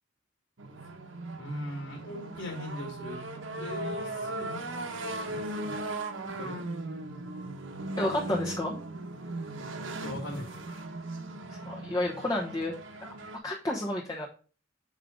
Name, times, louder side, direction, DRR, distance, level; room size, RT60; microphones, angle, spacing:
sound 1, 0.6-13.4, right 2 dB, 75° right, 1.1 m, -38 dB
voice 1, 1.4-3.2 3.6-4.7 5.2-5.8 6.3-6.6 10.0-10.5, left 1 dB, 80° left, 0 dB, 1.9 m, -39 dB
voice 2, 8.0-8.8 11.7-12.7 13.0-13.2 13.4-14.3, left 1 dB, 20° left, -2 dB, 1.0 m, -31 dB
7.5 x 5.0 x 3.7 m, 0.38 s
head